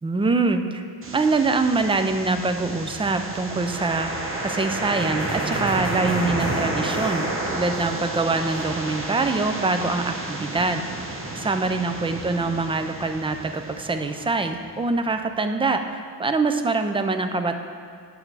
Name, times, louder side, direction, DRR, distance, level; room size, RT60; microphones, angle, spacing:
voice 1, 0.0-4.1 4.4-17.6, right 3 dB, 15° right, 7 dB, 0.3 m, -24 dB
sound 1, 1.0-14.9, right 2 dB, 30° right, 0.9 m, -31 dB
sound 2, 5.2-8.2 8.5-9.2, left 1 dB, 10° left, 0.9 m, -41 dB
8.8 x 6.3 x 4.7 m, 2.2 s
wide cardioid pair, 135°, 43 cm